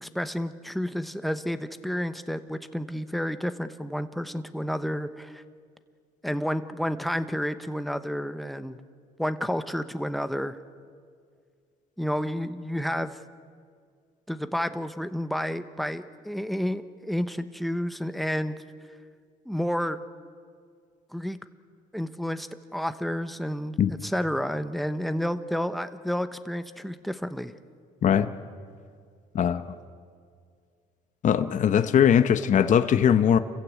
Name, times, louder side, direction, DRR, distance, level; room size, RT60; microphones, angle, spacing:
voice 1, 0.0-5.4 6.2-8.8 9.2-10.6 12.0-13.2 14.3-18.6 19.4-20.0 21.1-21.4 21.9-23.7 24.0-27.5, equal, ahead, 10 dB, 1.0 m, -30 dB
voice 2, 28.0-28.3 29.3-29.6 31.2-33.4, left 8 dB, 45° left, 10 dB, 1.0 m, -20 dB
28.0 x 15.5 x 8.4 m, 2.1 s
cardioid pair, 110°, 17 cm